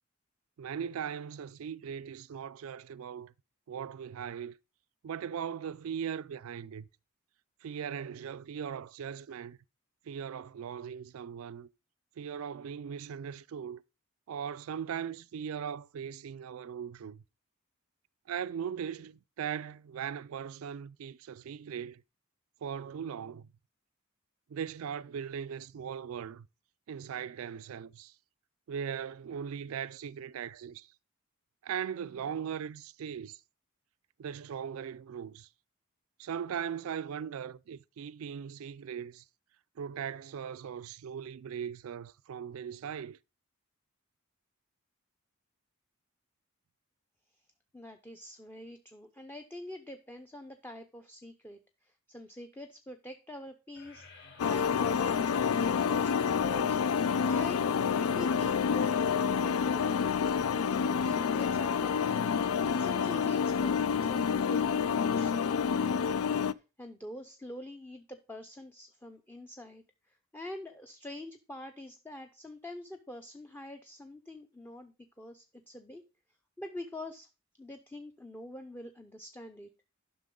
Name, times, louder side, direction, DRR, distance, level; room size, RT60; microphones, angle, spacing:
voice 1, 0.6-3.3 3.7-4.5 5.0-6.9 7.6-9.6 10.1-11.7 12.2-13.8 14.3-17.2 18.3-22.0 22.6-23.5 24.5-26.5 26.9-28.1 28.7-30.9 31.6-33.4 34.2-35.5 36.2-39.2 39.8-43.2, right 8 dB, 80° right, 0.4 m, -39 dB
voice 2, 47.7-60.4 60.8-64.8 65.1-76.0 76.6-77.3 77.6-79.7, left 1 dB, 10° left, 0.6 m, -46 dB
sound 1, 53.8-64.3, left 2 dB, 60° left, 2.0 m, -53 dB
sound 2, 54.4-66.5, left 6 dB, 85° left, 0.4 m, -28 dB
11.0 x 6.1 x 3.8 m
head